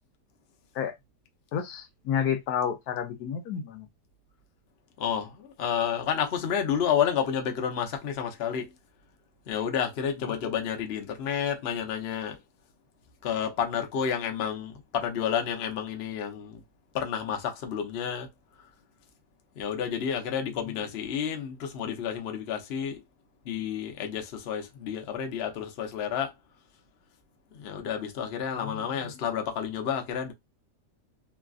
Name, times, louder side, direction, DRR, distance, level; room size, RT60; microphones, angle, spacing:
voice 1, 1.5-3.9 10.2-10.3 28.6-29.1, left 8 dB, 75° left, 1.1 m, -31 dB
voice 2, 5.0-8.7 9.5-12.4 13.2-16.6 16.9-18.3 19.6-23.0 23.4-26.3 27.5-30.3, left 8 dB, 55° left, 0.7 m, -30 dB
3.1 x 2.4 x 2.3 m
omnidirectional pair, 1.8 m